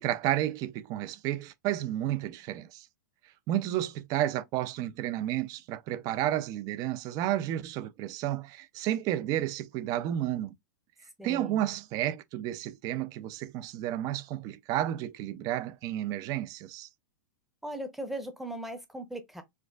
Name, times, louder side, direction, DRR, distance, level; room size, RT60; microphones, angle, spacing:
voice 1, 0.0-2.9 3.5-10.5 11.2-16.9, right 13 dB, 35° right, 0.4 m, -31 dB
voice 2, 11.2-11.6 17.6-19.4, right 1 dB, ahead, 0.7 m, -38 dB
4.4 x 2.4 x 2.3 m
hypercardioid pair, 135°, 10 cm